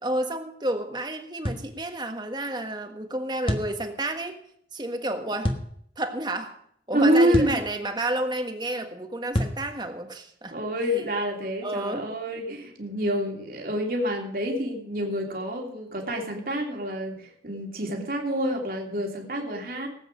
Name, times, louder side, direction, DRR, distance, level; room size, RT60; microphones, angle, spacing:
voice 1, 0.0-4.4 4.7-5.5 6.0-6.6 6.9-10.6 10.9-11.1 11.4-12.0 12.3-12.6, right 1 dB, 25° right, 6 dB, 1.5 m, -31 dB
sound 1, 1.4-1.7 3.5-3.7 5.4-5.7 7.3-7.6 9.3-9.6, equal, 30° left, 1.4 m, -26 dB
voice 2, 6.9-7.5 10.5-19.9, equal, 55° right, 1 dB, 3.0 m, -27 dB
18.5 x 8.8 x 5.2 m, 0.68 s
head